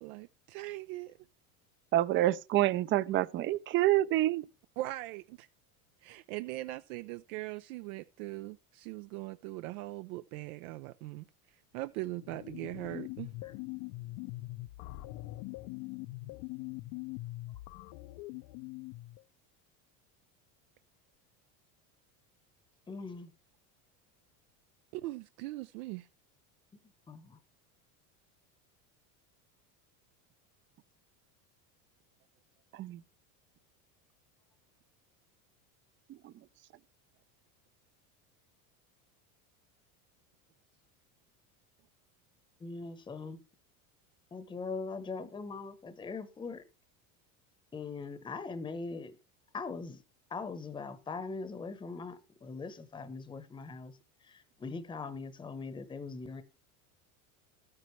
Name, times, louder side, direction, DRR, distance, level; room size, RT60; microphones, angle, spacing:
voice 1, 0.0-1.2 4.8-5.5 6.0-11.3 11.7-13.3 24.9-26.1, right 18 dB, 75° right, 0.6 m, -40 dB
voice 2, 1.9-4.4 32.7-33.0 36.2-36.3, right 14 dB, 30° right, 0.4 m, -27 dB
sound 1, 12.1-19.2, left 19 dB, 55° left, 0.6 m, -43 dB
voice 3, 22.9-23.3 27.1-27.4 42.6-43.4 44.3-46.6 47.7-49.1 49.5-50.0 50.3-53.9 54.2-56.4, left 4 dB, 10° left, 0.9 m, -41 dB
13.0 x 9.6 x 3.2 m
supercardioid pair, 140°, 43 cm